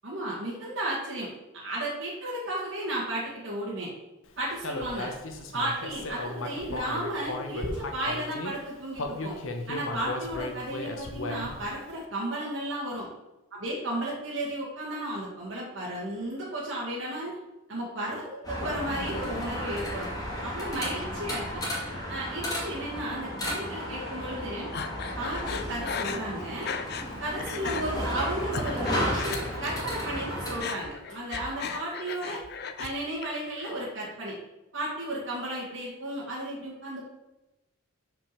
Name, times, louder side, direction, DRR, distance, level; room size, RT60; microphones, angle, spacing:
voice 1, 0.0-3.9 4.4-5.1 5.5-9.4 9.7-13.1 13.6-17.4 17.7-20.1 20.4-21.6 22.1-24.7 25.2-26.7 27.2-32.4 32.8-34.4 34.7-37.1, right 1 dB, 65° right, -5 dB, 2.0 m, -34 dB
Human voice, 4.6-8.5 8.9-11.7, left 2 dB, 75° left, 1.0 m, -35 dB
sound 1, 18.4-30.6, equal, 20° left, 2.4 m, -33 dB
Breathing, 24.7-27.1 27.4-27.8 28.3-29.8 30.1-32.9 33.2-33.8, left 6 dB, 50° left, 0.6 m, -36 dB
6.0 x 5.2 x 6.7 m, 0.99 s
head